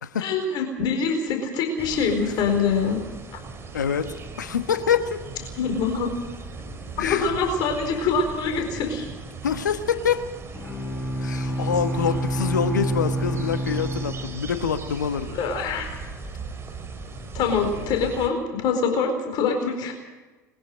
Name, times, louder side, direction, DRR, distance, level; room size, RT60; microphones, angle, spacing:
voice 1, 0.2-3.0 5.6-6.1 7.0-9.1 15.3-15.9 17.3-19.9, left 5 dB, 50° left, 4 dB, 4.5 m, -24 dB
sound 1, 1.8-18.3, right 4 dB, 25° right, 4.0 m, -38 dB
voice 2, 3.7-5.3 7.0-7.3 9.4-10.3 11.2-15.3, left 7 dB, 80° left, 10 dB, 1.4 m, -26 dB
Bowed string instrument, 10.5-15.0, right 1 dB, 15° left, 3.7 m, -28 dB
22.0 x 15.0 x 7.9 m, 1.2 s
figure-of-eight pair, 75°, 10 cm